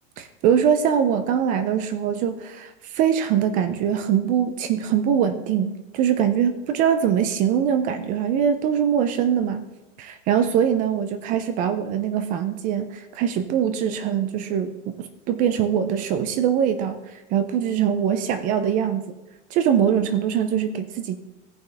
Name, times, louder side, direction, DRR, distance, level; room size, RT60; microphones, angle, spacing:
voice 1, 0.2-9.7 10.0-19.1 19.5-21.2, right 8 dB, 25° right, 10 dB, 0.3 m, -23 dB
16.0 x 5.6 x 3.3 m, 1.0 s
supercardioid pair, 150°, 34 cm